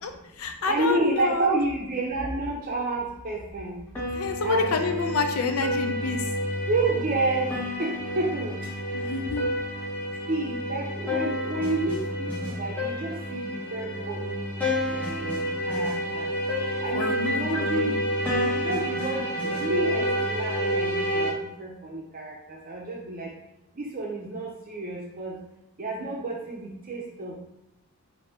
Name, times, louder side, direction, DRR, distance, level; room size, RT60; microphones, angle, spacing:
voice 1, 0.0-1.6 4.1-6.3 8.9-9.5 16.9-18.0, left 4 dB, 80° left, 6 dB, 0.4 m, -28 dB
voice 2, 0.6-3.8 4.4-4.8 6.7-7.5 7.8-8.6 10.3-14.6 14.9-16.3 16.8-18.0 18.4-23.3 23.8-25.4 25.8-27.3, right 2 dB, 40° right, -1 dB, 0.6 m, -30 dB
sound 1, 4.0-21.3, equal, 10° left, 0.8 m, -29 dB
4.2 x 2.7 x 3.3 m, 0.94 s
head